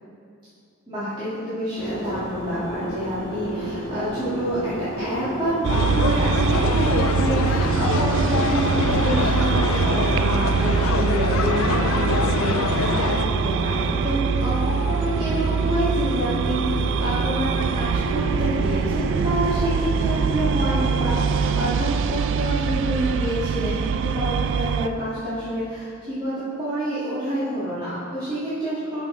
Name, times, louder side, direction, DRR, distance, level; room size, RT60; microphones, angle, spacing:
voice 1, 0.9-29.1, right 1 dB, 25° right, -14 dB, 2.1 m, -28 dB
sound 1, 1.8-21.6, equal, 55° left, 2.1 m, -32 dB
sound 2, 5.6-24.9, right 6 dB, 60° right, 0.3 m, -24 dB
sound 3, 5.7-13.2, left 5 dB, 70° left, 0.4 m, -26 dB
11.0 x 5.8 x 3.9 m, 2.3 s
head